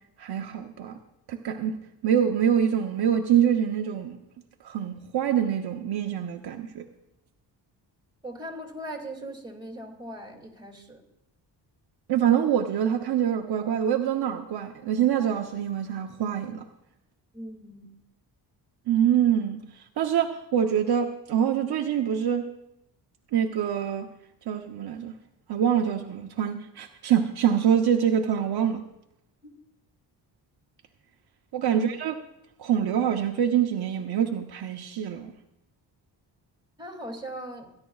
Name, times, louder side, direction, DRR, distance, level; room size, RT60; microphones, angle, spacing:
voice 1, 0.2-1.0 1.3-1.8 2.0-4.2 4.6-6.9 12.1-16.6 18.9-22.5 23.3-24.1 24.5-25.1 25.5-28.8 31.5-32.2 32.6-35.3, right 9 dB, 65° right, 4 dB, 0.8 m, -25 dB
voice 2, 8.2-11.0 17.3-17.9 31.7-31.8 36.8-37.7, right 1 dB, 10° right, 1 dB, 2.4 m, -39 dB
28.0 x 10.5 x 2.4 m, 0.84 s
cardioid pair, 115°, 42 cm